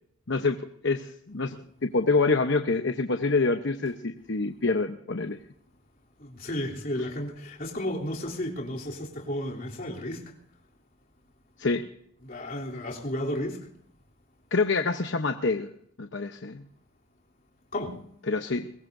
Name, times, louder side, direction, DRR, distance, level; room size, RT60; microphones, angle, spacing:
voice 1, 0.3-5.4 11.6-11.9 14.5-16.6 18.3-18.7, left 3 dB, 60° left, 0.9 m, -27 dB
voice 2, 6.2-10.3 12.2-13.7 17.7-18.0, left 1 dB, 45° left, 3.2 m, -33 dB
22.5 x 20.0 x 2.7 m
head